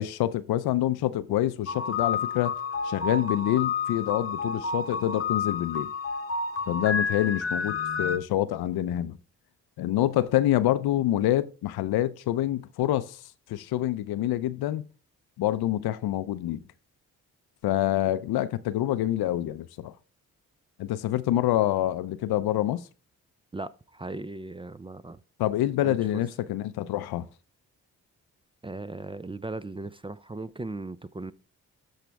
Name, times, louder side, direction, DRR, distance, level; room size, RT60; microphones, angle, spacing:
voice 1, 0.0-2.6 2.8-5.9 6.7-9.2 9.8-13.2 13.5-14.8 15.4-16.6 17.6-19.9 20.8-22.8 25.4-27.3, left 13 dB, 75° left, 0.6 m, -26 dB
sound 1, 1.7-8.2, left 5 dB, 35° left, 1.0 m, -30 dB
voice 2, 23.5-25.2 25.8-26.0 28.6-31.3, right 2 dB, 15° right, 0.4 m, -37 dB
12.5 x 5.0 x 3.4 m
supercardioid pair, 45°, 38 cm